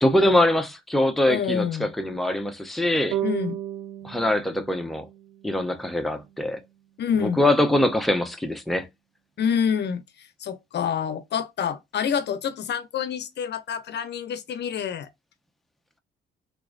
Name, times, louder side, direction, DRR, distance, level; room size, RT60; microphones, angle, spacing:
voice 1, 0.0-3.2 4.0-5.1 5.4-6.6 7.2-8.9, left 1 dB, ahead, 0.7 m, -23 dB
voice 2, 1.3-1.9 3.2-3.6 7.0-7.4 9.4-15.1, left 7 dB, 60° left, 0.7 m, -27 dB
sound 1, 3.1-6.4, right 12 dB, 85° right, 0.5 m, -34 dB
3.5 x 3.0 x 2.5 m
cardioid pair, 90°, 20 cm